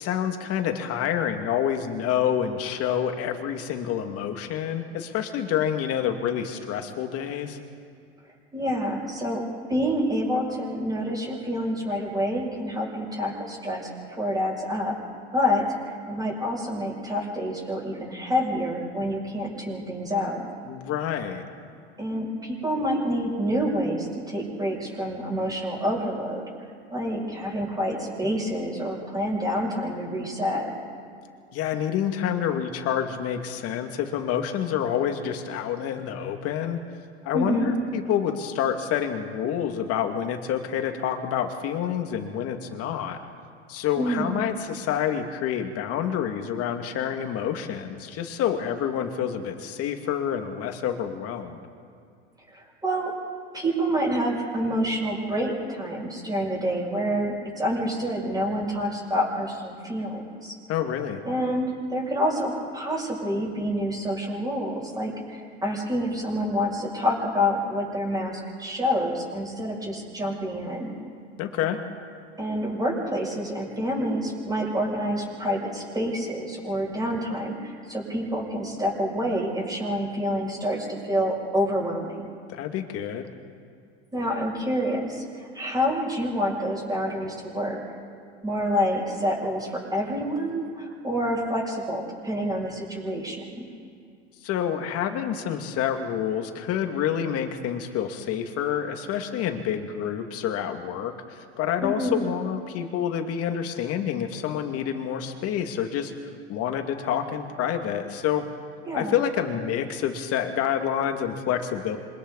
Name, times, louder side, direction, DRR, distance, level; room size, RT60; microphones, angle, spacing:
voice 1, 0.0-7.6 20.7-21.4 31.5-36.8 37.2-43.2 43.7-51.6 60.7-61.2 71.4-71.8 82.5-83.3 94.4-106.1 106.5-108.5 108.9-112.0, left 9 dB, 45° left, 5 dB, 2.4 m, -28 dB
voice 2, 8.5-9.4 9.7-13.9 14.2-14.9 15.3-20.5 22.0-26.4 26.9-30.7 37.3-37.8 44.0-44.5 52.5-53.1 53.5-60.5 61.2-71.0 72.4-82.3 84.1-87.8 88.4-93.7 101.8-102.2 108.9-109.1, equal, 10° right, -3 dB, 7.2 m, -27 dB
27.0 x 24.5 x 4.1 m, 2.3 s
hypercardioid pair, 105°, 32 cm